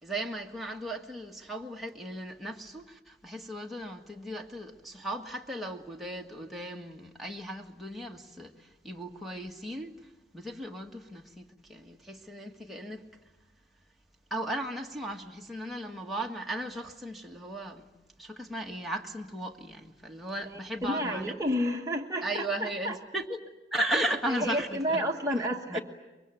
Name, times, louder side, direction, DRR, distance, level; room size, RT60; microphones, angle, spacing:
voice 1, 0.0-9.9 10.3-13.0 14.3-17.9 18.2-21.4 22.2-23.4 23.7-25.0 25.4-25.5 25.7-25.8, right 1 dB, ahead, 1.6 m, -36 dB
voice 2, 20.8-23.0 24.3-25.8, equal, 20° right, 1.2 m, -30 dB
24.5 x 23.5 x 9.1 m
head